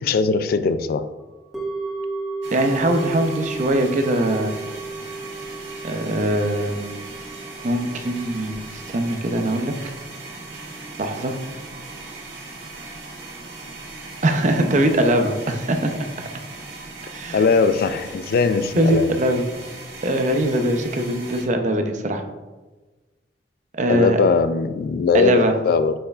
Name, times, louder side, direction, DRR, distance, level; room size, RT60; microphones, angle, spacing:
voice 1, 0.0-1.1 17.3-19.1 23.9-25.9, left 4 dB, 55° left, 12 dB, 0.3 m, -20 dB
sound 1, 1.5-11.8 12.1-12.2, right 3 dB, ahead, 1.6 m, -35 dB
sound 2, 2.4-21.4, right 3 dB, 85° right, 1.8 m, -38 dB
voice 2, 2.5-4.6 5.8-6.8 7.6-9.7 11.0-11.4 14.2-15.9 17.1-17.4 18.8-19.4 20.0-22.2 23.7-24.2 25.1-25.5, right 1 dB, 45° right, 6 dB, 0.6 m, -21 dB
8.6 x 5.4 x 2.4 m, 1.2 s
head